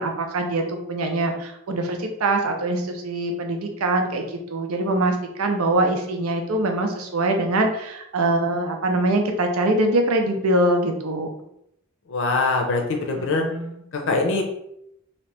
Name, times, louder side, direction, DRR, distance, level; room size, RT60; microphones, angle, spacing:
voice 1, 0.0-11.3 13.3-13.8, right 2 dB, 85° right, 4 dB, 0.6 m, -23 dB
voice 2, 12.1-13.4 13.9-14.4, left 3 dB, 65° left, 2 dB, 0.6 m, -23 dB
2.9 x 2.8 x 3.2 m, 0.77 s
head